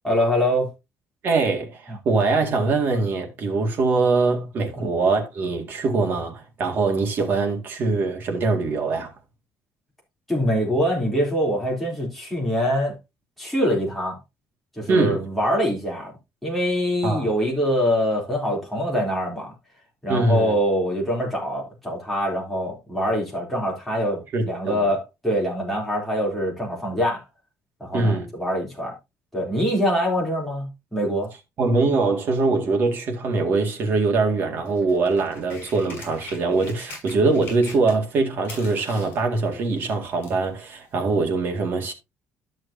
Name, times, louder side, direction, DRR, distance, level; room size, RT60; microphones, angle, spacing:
voice 1, 0.0-0.7 4.7-4.9 10.3-12.9 13.4-14.2 14.8-16.1 16.4-19.5 20.0-27.2 27.8-28.9 29.3-31.3, equal, 5° left, 3.4 m, -24 dB
voice 2, 1.2-9.1 14.9-15.2 17.0-17.3 20.1-20.6 24.3-24.9 27.9-28.3 31.6-41.9, right 3 dB, 40° right, 2.1 m, -23 dB
sound 1, 34.6-38.2 38.4-40.5 41.3-41.4, left 3 dB, 40° left, 6.3 m, -42 dB
13.0 x 6.3 x 2.8 m
cardioid pair, 180°, 5 cm